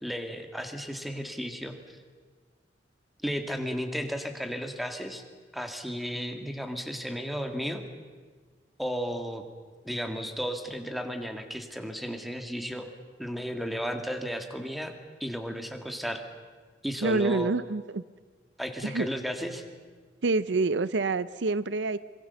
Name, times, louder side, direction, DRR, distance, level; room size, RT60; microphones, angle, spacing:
voice 1, 0.0-2.0 3.2-5.2 5.5-7.8 8.8-9.4 9.8-12.9 13.2-14.9 15.2-16.2 16.8-17.5 18.6-19.6, equal, ahead, 6 dB, 2.0 m, -34 dB
voice 2, 17.0-18.0 18.8-19.1 20.2-22.0, right 3 dB, 75° right, 16 dB, 0.6 m, -27 dB
25.5 x 22.0 x 7.0 m, 1.5 s
head